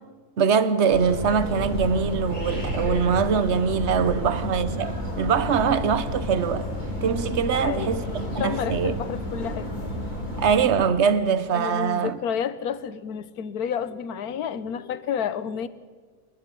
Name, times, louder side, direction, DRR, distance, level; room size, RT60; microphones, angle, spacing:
voice 1, 0.4-6.7 7.0-8.9 10.4-12.2, right 6 dB, 50° right, 1.3 m, -23 dB
sound 1, 0.9-10.7, left 2 dB, 30° left, 3.8 m, -33 dB
sound 2, 1.4-10.5, equal, 85° right, 7.8 m, -34 dB
voice 2, 7.5-9.7 11.5-15.7, left 8 dB, 80° left, 1.5 m, -30 dB
28.5 x 12.0 x 9.3 m
omnidirectional pair, 1.6 m